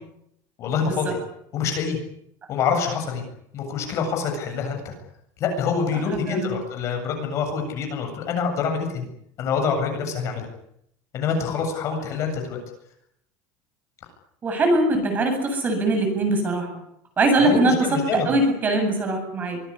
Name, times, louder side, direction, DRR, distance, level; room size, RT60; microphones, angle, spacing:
voice 1, 0.6-1.2 1.5-2.0 2.5-3.2 3.5-4.9 5.4-9.1 9.4-10.5 11.1-12.6 17.4-18.4, left 5 dB, 35° left, 4 dB, 7.8 m, -26 dB
voice 2, 6.3-6.6 14.4-16.7 17.2-17.8 18.1-19.6, right 2 dB, 20° right, 4 dB, 8.0 m, -21 dB
25.0 x 20.5 x 10.0 m, 0.75 s
cardioid pair, 175°, 9 cm